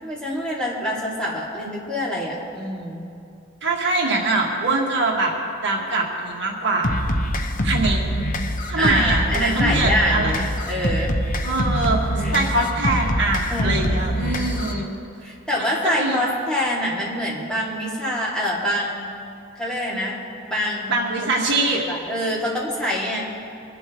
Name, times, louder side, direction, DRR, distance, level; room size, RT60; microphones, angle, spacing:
voice 1, 0.0-3.0 8.8-11.1 12.1-12.6 12.8-12.9 13.5-13.9 14.5-14.9 15.2-19.1 19.6-20.2 20.5-21.1 21.5-23.3, equal, 5° left, -7 dB, 2.6 m, -26 dB
voice 2, 3.6-7.1 7.6-8.0 8.7-10.3 11.4-14.9 15.8-16.2 20.9-21.8, right 2 dB, 60° right, -2 dB, 1.9 m, -23 dB
sound 1, 6.8-14.8, equal, 40° left, 0.9 m, -24 dB
24.0 x 11.5 x 3.1 m, 2.5 s
head